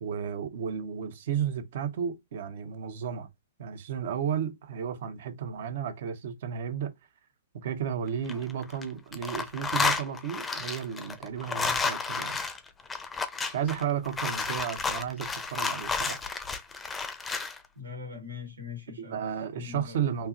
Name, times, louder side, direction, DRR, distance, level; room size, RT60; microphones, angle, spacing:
voice 1, 0.0-3.3 3.6-6.9 7.5-12.4 13.5-16.2 19.0-20.3, right 8 dB, 60° right, 0.9 m, -33 dB
sound 1, 8.1-8.8 9.1-17.6, left 4 dB, 15° left, 0.6 m, -31 dB
voice 2, 17.7-20.0, left 6 dB, 85° right, 1.5 m, -42 dB
4.4 x 2.9 x 2.5 m
hypercardioid pair, 120°, 0 cm